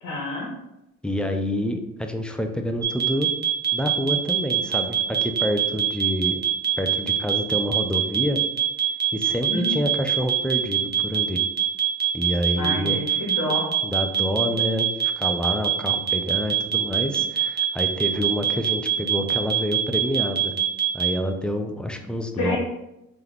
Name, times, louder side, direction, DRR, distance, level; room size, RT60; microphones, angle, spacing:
voice 1, 0.0-0.5 9.5-9.8 12.5-13.7 22.4-22.6, left 2 dB, 80° left, -4 dB, 1.2 m, -28 dB
voice 2, 1.0-3.3 3.7-6.4 6.8-8.4 9.1-11.4 12.1-13.0 13.8-20.5 20.9-22.6, equal, 5° left, 4 dB, 0.5 m, -27 dB
sound 1, 2.8-21.1, right 10 dB, 35° right, 1.0 m, -23 dB
3.4 x 3.0 x 3.8 m, 0.89 s
cardioid pair, 90°, 30 cm